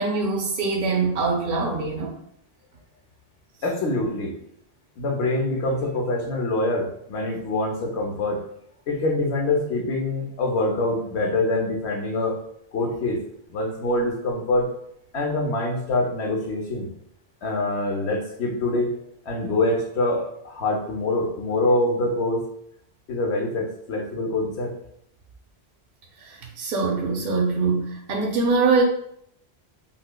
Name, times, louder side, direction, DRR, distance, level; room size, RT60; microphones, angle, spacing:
voice 1, 0.0-2.1 26.2-28.8, right 4 dB, 65° right, 0 dB, 0.7 m, -23 dB
voice 2, 3.6-4.3 5.0-8.4 8.9-12.3 12.7-13.2 13.5-14.7 15.1-16.9 17.4-22.4 23.1-24.7, left 2 dB, 80° left, 1 dB, 1.0 m, -25 dB
5.4 x 2.0 x 2.2 m, 0.70 s
omnidirectional pair, 1.1 m